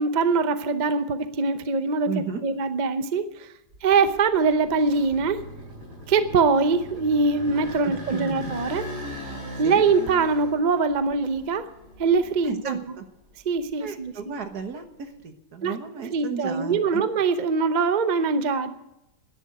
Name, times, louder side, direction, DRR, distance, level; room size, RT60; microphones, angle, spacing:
voice 1, 0.0-2.1 2.4-3.3 3.8-5.4 6.1-8.8 9.6-11.7 12.0-12.8 13.5-14.4 15.6-18.7, right 4 dB, 40° right, 10 dB, 0.7 m, -23 dB
voice 2, 2.1-2.4 7.8-8.4 9.6-9.8 12.4-13.1 13.8-17.0, right 6 dB, 70° right, 7 dB, 1.8 m, -34 dB
sound 1, 3.7-12.8 13.2-15.1, equal, 85° right, 6.5 m, -40 dB
11.5 x 10.5 x 9.4 m, 0.91 s
omnidirectional pair, 1.8 m